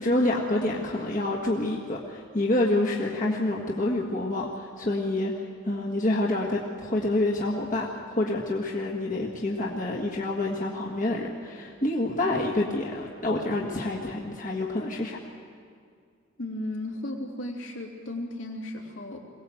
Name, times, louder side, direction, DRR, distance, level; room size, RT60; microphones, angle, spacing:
voice 1, 0.0-15.2, left 2 dB, 40° left, -2 dB, 1.6 m, -27 dB
voice 2, 16.4-19.2, left 1 dB, 70° left, 0 dB, 3.2 m, -35 dB
22.5 x 18.0 x 7.8 m, 2.2 s
head